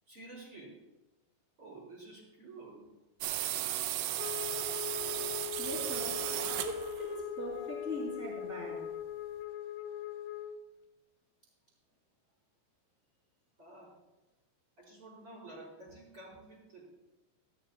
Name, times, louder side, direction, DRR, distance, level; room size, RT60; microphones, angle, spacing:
voice 1, 0.1-0.8 1.6-2.8 13.6-13.9 14.8-16.9, right 2 dB, 30° right, -3 dB, 4.6 m, -50 dB
sound 1, 3.2-7.2, right 13 dB, 85° right, 2.7 m, -35 dB
Wind instrument woodwind instrument, 4.2-10.6, left 11 dB, 80° left, 3.0 m, -41 dB
voice 2, 5.6-6.2 6.6-8.9, equal, 15° left, -7 dB, 3.4 m, -40 dB
16.5 x 13.0 x 2.3 m, 1.1 s
omnidirectional pair, 5.4 m